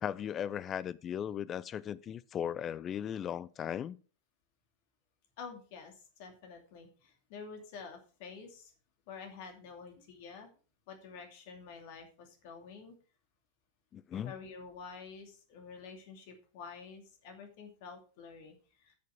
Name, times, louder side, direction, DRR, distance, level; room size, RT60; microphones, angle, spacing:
voice 1, 0.0-4.0 13.9-14.3, left 9 dB, 25° left, 0.5 m, -37 dB
voice 2, 5.4-8.7 9.1-10.5 10.9-13.0 14.1-18.9, left 5 dB, 50° left, 2.6 m, -49 dB
10.5 x 6.6 x 5.0 m
figure-of-eight pair, 90°, 0 cm